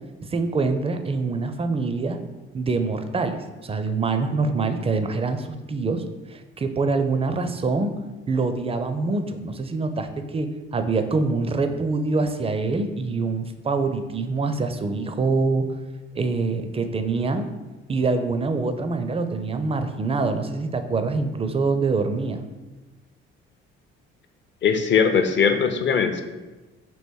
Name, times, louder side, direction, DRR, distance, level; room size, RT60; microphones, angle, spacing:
voice 1, 0.3-2.2 2.5-3.4 3.6-6.0 6.3-7.9 8.3-15.7 16.2-17.5 17.9-22.4, right 3 dB, 20° right, 8 dB, 0.4 m, -25 dB
voice 2, 24.6-26.2, left 6 dB, 35° left, 8 dB, 0.5 m, -20 dB
3.1 x 3.0 x 4.2 m, 1.2 s
hypercardioid pair, 45°, 31 cm